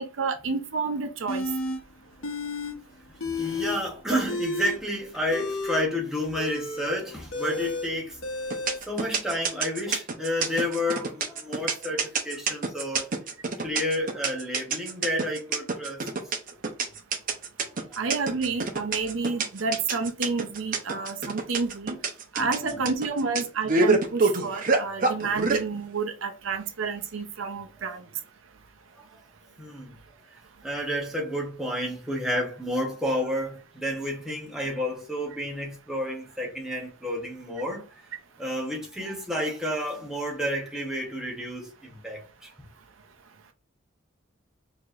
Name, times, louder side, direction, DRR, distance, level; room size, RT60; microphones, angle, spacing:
voice 1, 0.0-1.5 18.0-22.0 22.3-28.1, right 4 dB, 80° right, 0.6 m, -30 dB
sound 1, 1.3-1.8 2.2-2.7 3.0-3.8 4.2-8.8, left 2 dB, 90° left, 0.9 m, -32 dB
voice 2, 3.2-8.2 8.9-13.1 13.6-16.0 22.4-22.9 29.0-29.1 29.6-29.9 30.6-37.9 38.4-42.5, equal, 5° right, 1.0 m, -30 dB
sound 2, 8.5-25.6, right 4 dB, 45° right, 0.7 m, -26 dB
4.6 x 2.9 x 2.5 m
head